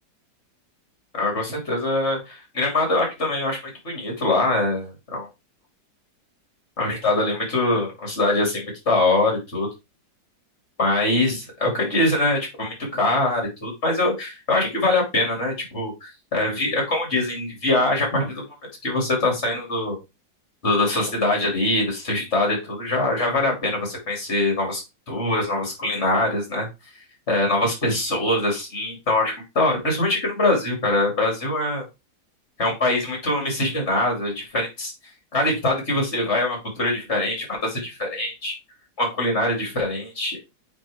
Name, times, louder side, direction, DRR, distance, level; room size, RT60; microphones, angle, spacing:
voice 1, 1.2-3.6 3.8-5.3 6.8-9.7 10.8-18.4 18.8-20.0 20.6-24.8 25.1-26.7 27.3-31.8 32.6-34.9 35.3-38.5 39.0-40.4, left 2 dB, 35° left, 0 dB, 3.0 m, -23 dB
8.5 x 3.7 x 3.6 m, 0.24 s
omnidirectional pair, 1.9 m